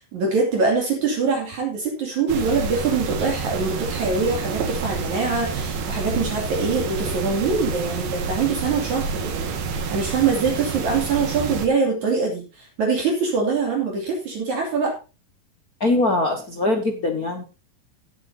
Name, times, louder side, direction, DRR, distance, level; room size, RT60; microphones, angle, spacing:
voice 1, 0.0-15.0, right 4 dB, 55° right, -1 dB, 3.8 m, -24 dB
sound 1, 2.3-11.7, right 5 dB, 85° right, 3.6 m, -28 dB
voice 2, 15.8-17.4, left 2 dB, 60° left, 3 dB, 0.9 m, -22 dB
18.0 x 8.1 x 2.7 m, 0.31 s
omnidirectional pair, 4.1 m